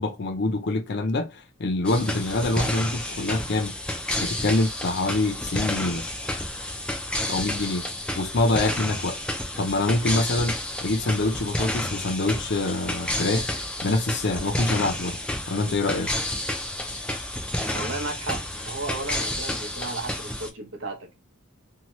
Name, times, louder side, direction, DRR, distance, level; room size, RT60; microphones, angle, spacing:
voice 1, 0.0-3.8 4.2-6.1 7.3-7.8 8.2-9.2 9.6-10.6 10.8-13.5 13.8-15.2 15.5-16.1, left 2 dB, 55° left, 0.5 m, -25 dB
sound 1, 1.8-20.5, left 1 dB, 5° left, 0.3 m, -30 dB
voice 2, 17.7-21.2, right 3 dB, 70° right, 0.8 m, -34 dB
2.8 x 2.2 x 2.9 m
head